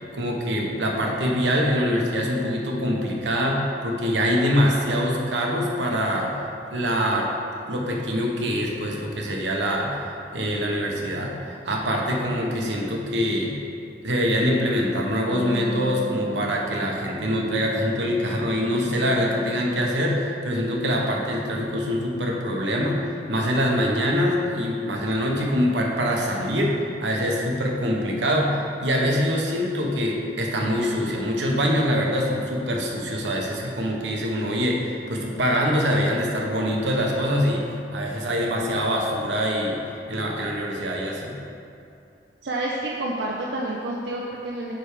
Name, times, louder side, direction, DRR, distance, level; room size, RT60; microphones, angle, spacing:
voice 1, 0.1-6.3 6.7-7.3 7.6-13.5 14.0-37.6 37.9-39.8 40.1-41.4, equal, 90° right, -1 dB, 1.1 m, -24 dB
Wind instrument woodwind instrument, 14.9-20.0, right 2 dB, 45° left, 0.6 m, -38 dB
voice 2, 42.4-44.7, right 1 dB, 70° right, -3 dB, 0.6 m, -29 dB
9.3 x 3.4 x 5.0 m, 2.6 s
head